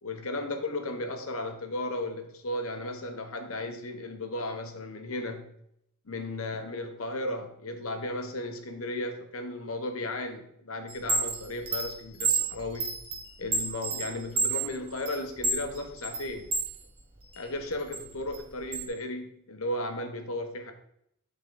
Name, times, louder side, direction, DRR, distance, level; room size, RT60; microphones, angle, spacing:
voice 1, 0.0-5.5 6.1-12.9 13.4-16.5 17.4-20.7, left 1 dB, 70° left, 6 dB, 1.1 m, -35 dB
Chime, 10.9-16.7 17.2-18.9, right 4 dB, 25° right, 1.2 m, -30 dB
11.0 x 4.0 x 3.9 m, 0.73 s
head